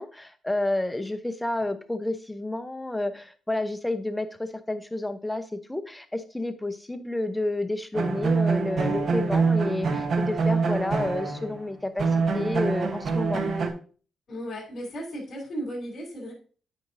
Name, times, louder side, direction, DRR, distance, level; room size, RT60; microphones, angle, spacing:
voice 1, 0.0-12.1 12.3-13.4, left 2 dB, 10° left, 9 dB, 0.8 m, -30 dB
sound 1, 7.9-11.6 12.0-13.7, right 4 dB, 60° right, 1.1 m, -25 dB
voice 2, 14.3-16.3, equal, 60° left, -4 dB, 3.0 m, -35 dB
9.1 x 5.3 x 2.6 m, 0.40 s
cardioid pair, 70°, 0 cm